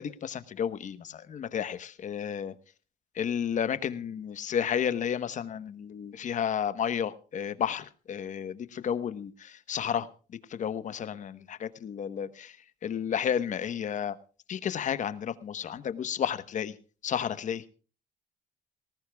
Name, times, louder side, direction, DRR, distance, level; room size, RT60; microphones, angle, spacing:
voice 1, 0.0-2.5 3.2-10.1 10.5-12.6 12.8-14.2 14.5-16.7 17.0-17.6, left 8 dB, 45° left, 13 dB, 1.2 m, -32 dB
19.5 x 18.5 x 2.3 m, 0.37 s
cardioid pair, 110°, 17 cm